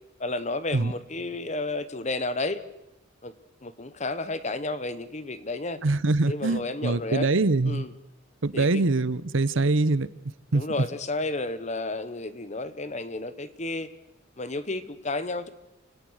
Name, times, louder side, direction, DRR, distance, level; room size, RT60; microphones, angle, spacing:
voice 1, 0.2-2.6 3.2-3.3 3.6-5.8 6.3-7.3 7.6-7.9 8.5-8.8 10.5-13.9 14.4-15.5, left 2 dB, 35° left, 1.1 m, -32 dB
voice 2, 5.8-7.8 8.4-10.1 10.5-10.6, right 3 dB, 75° right, 0.9 m, -23 dB
28.5 x 18.0 x 6.4 m
head